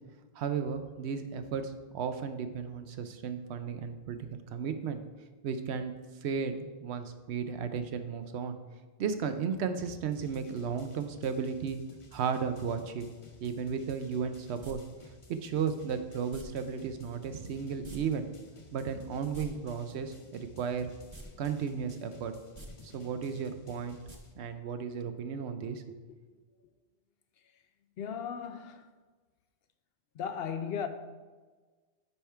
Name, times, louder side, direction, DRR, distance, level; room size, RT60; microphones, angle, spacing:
voice 1, 0.4-5.0 5.4-5.9 6.2-8.6 9.0-11.8 12.1-13.1 13.4-14.8 15.3-18.3 18.7-20.9 21.4-22.3 22.8-24.0 24.4-26.0, right 6 dB, 80° right, 0.9 m, -34 dB
sound 1, 10.1-24.3, left 2 dB, 35° left, 0.7 m, -55 dB
sound 2, 14.6-14.7 16.3-16.4 17.8-18.0 18.3-18.4 19.2-19.5 21.1-21.3 21.6-21.7 22.4-22.7 24.1-24.2 24.5-24.6, right 2 dB, 30° right, 0.8 m, -46 dB
voice 2, 28.0-28.9 30.1-30.9, left 7 dB, 70° left, 0.8 m, -36 dB
9.9 x 3.5 x 4.4 m
omnidirectional pair, 1.1 m